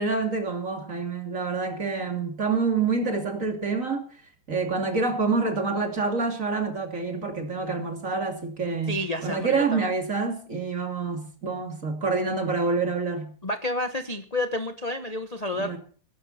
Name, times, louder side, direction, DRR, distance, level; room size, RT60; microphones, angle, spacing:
voice 1, 0.0-4.2 4.5-13.3 15.5-15.8, right 4 dB, 35° right, 3.1 m, -27 dB
voice 2, 8.9-9.9 13.4-15.8, left 1 dB, 25° left, 0.9 m, -30 dB
17.0 x 16.5 x 4.3 m
omnidirectional pair, 2.3 m